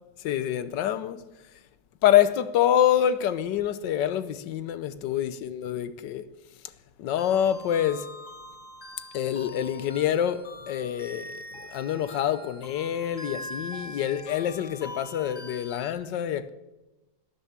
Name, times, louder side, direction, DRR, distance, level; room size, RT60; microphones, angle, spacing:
voice 1, 0.2-1.2 2.0-6.3 7.0-8.1 9.1-16.5, left 10 dB, 75° left, 1.4 m, -26 dB
sound 1, 7.2-15.9, equal, 45° left, 3.1 m, -43 dB
12.5 x 10.5 x 8.7 m
omnidirectional pair, 2.0 m